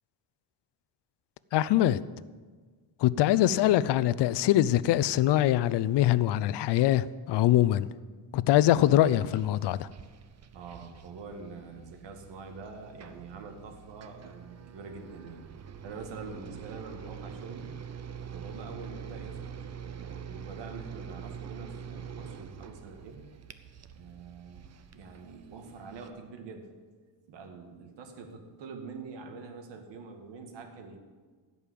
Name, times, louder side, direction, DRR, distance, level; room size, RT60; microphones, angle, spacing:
voice 1, 1.5-2.0 3.0-7.9 8.3-9.9, left 13 dB, 70° left, 0.6 m, -23 dB
voice 2, 3.3-3.7 8.9-9.3 10.5-15.5 15.8-17.7 18.3-23.3 23.9-26.7 27.3-31.0, right 4 dB, 80° right, 2.0 m, -45 dB
sound 1, 9.0-26.1, right 7 dB, 35° right, 0.8 m, -45 dB
16.0 x 5.5 x 8.5 m
cardioid pair, 120°, 43 cm